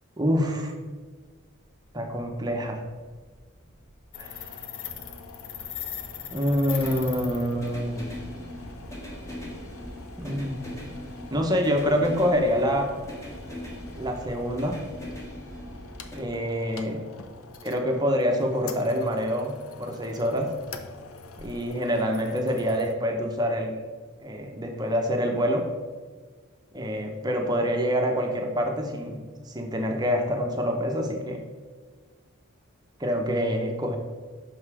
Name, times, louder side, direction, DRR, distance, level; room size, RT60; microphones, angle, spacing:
voice 1, 0.2-0.7 1.9-2.8 4.2-4.5 6.3-8.0 10.2-10.6 11.3-13.0 14.0-14.8 16.1-17.0 17.6-20.5 21.4-23.8 24.2-25.7 26.7-31.4 33.0-34.0, equal, 20° right, 3 dB, 0.7 m, -26 dB
sound 1, 1.2-16.2, equal, 15° left, 1.3 m, -41 dB
sound 2, 4.1-22.9, left 6 dB, 85° left, 0.6 m, -43 dB
5.9 x 5.3 x 4.8 m, 1.5 s
head